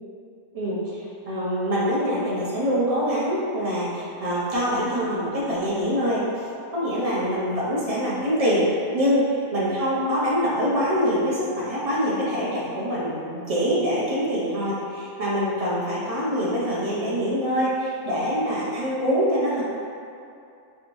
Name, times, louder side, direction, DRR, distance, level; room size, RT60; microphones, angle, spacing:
voice 1, 0.5-8.7 8.9-19.6, equal, 40° right, -7 dB, 0.6 m, -24 dB
3.5 x 3.0 x 2.5 m, 2.6 s
omnidirectional pair, 1.3 m